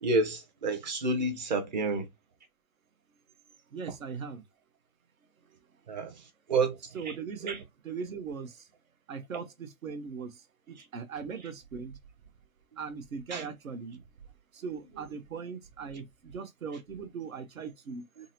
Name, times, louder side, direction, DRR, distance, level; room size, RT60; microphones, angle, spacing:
voice 1, 0.0-2.1 5.9-6.2 6.5-6.8 7.4-7.6 13.3-13.4, right 3 dB, 35° right, 0.7 m, -29 dB
voice 2, 3.7-4.4 6.9-8.5 9.1-10.4 10.7-11.9 12.8-14.0 14.5-18.0, right 5 dB, 75° right, 0.9 m, -39 dB
3.6 x 2.0 x 2.7 m
hypercardioid pair, 155°, 41 cm